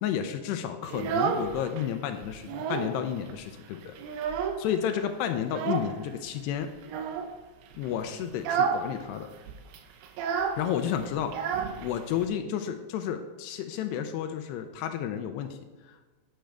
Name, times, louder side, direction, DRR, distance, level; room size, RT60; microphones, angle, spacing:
voice 1, 0.0-3.9 4.4-6.7 7.7-9.3 10.6-11.3 11.8-15.6 15.9-16.0, left 9 dB, 80° left, 7 dB, 2.6 m, -31 dB
Child speech kid speaking, 0.8-1.9 2.2-3.0 3.3-3.4 3.7-4.8 5.5-6.0 6.8-7.3 7.7-7.9 8.3-8.9 9.1-9.2 9.5-12.3, right 6 dB, 75° right, 2.5 m, -30 dB
11.5 x 9.0 x 3.4 m, 1.3 s
omnidirectional pair, 5.1 m